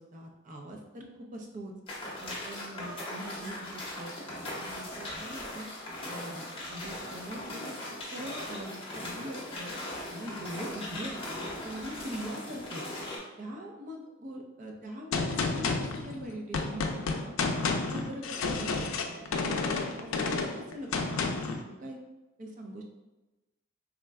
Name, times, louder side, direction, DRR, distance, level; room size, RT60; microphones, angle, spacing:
voice 1, 0.0-1.7 2.2-5.7 6.0-7.7 8.0-9.7 10.1-12.8 13.4-17.3 17.7-21.4 21.8-22.0 22.4-22.8, equal, 40° right, 1 dB, 0.5 m, -42 dB
sound 1, 1.9-13.2, left 1 dB, 30° left, 0.8 m, -39 dB
Gunshot gunfire, 15.1-21.6, left 4 dB, 80° left, 0.4 m, -31 dB
3.6 x 2.1 x 3.4 m, 1.1 s
head